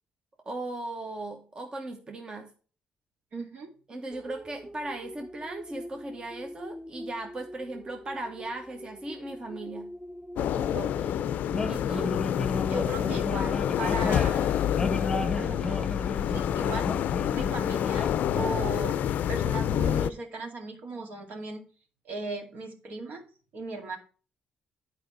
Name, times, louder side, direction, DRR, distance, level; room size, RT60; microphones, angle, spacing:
voice 1, 0.4-2.5 3.9-9.9 11.7-12.1, right 2 dB, 30° right, 4 dB, 1.0 m, -37 dB
voice 2, 3.3-3.7 10.7-11.2 12.7-14.5 15.4-15.9 16.3-16.9 17.3-19.0 19.3-21.6 22.0-23.2 23.5-24.0, right 2 dB, 70° right, 3 dB, 2.2 m, -37 dB
sound 1, 4.1-11.4, equal, 10° right, 0.6 m, -44 dB
sound 2, 10.4-20.1, left 10 dB, 80° left, 0.4 m, -27 dB
sound 3, 11.5-18.5, left 2 dB, 20° left, 0.8 m, -34 dB
10.5 x 4.8 x 4.5 m, 0.38 s
cardioid pair, 120°, 3 cm